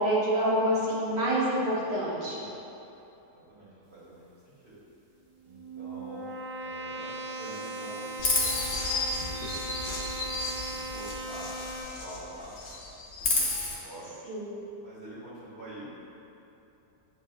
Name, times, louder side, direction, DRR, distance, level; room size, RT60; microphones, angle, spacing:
voice 1, 0.0-2.4 14.3-14.5, right 1 dB, 85° right, -7 dB, 1.6 m, -27 dB
voice 2, 3.3-4.8 5.4-8.9 9.4-10.0 10.6-11.5 11.8-12.5 13.1-14.2 14.8-15.9, right 1 dB, 40° right, -12 dB, 1.7 m, -47 dB
sound 1, 5.3-11.8, right 2 dB, 60° right, 1.1 m, -38 dB
Chirp tweet, 8.2-12.2 12.5-13.7, left 2 dB, 55° left, 1.0 m, -31 dB
7.4 x 2.7 x 2.4 m, 2.9 s
omnidirectional pair, 1.8 m